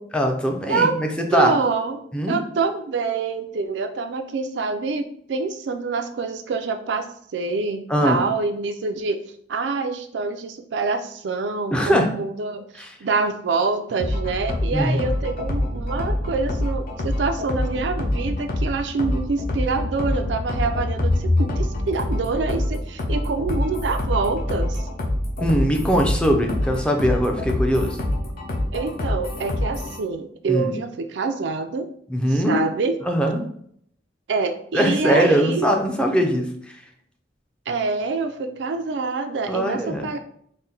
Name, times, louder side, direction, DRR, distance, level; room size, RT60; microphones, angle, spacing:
voice 1, 0.1-1.5 2.1-2.4 7.9-8.2 11.7-12.1 12.8-13.0 14.7-15.0 25.4-28.0 30.5-30.7 32.1-32.6 33.0-33.4 34.7-36.5 39.5-40.1, equal, 5° left, 2 dB, 0.5 m, -21 dB
voice 2, 1.3-2.0 2.3-7.1 7.3-9.2 9.5-12.7 13.0-24.9 28.7-31.9 32.3-32.9 34.3-35.7 37.7-40.2, right 4 dB, 80° right, 7 dB, 0.4 m, -26 dB
sound 1, 14.0-30.0, left 1 dB, 55° left, 0.8 m, -25 dB
4.1 x 2.1 x 3.8 m, 0.65 s
head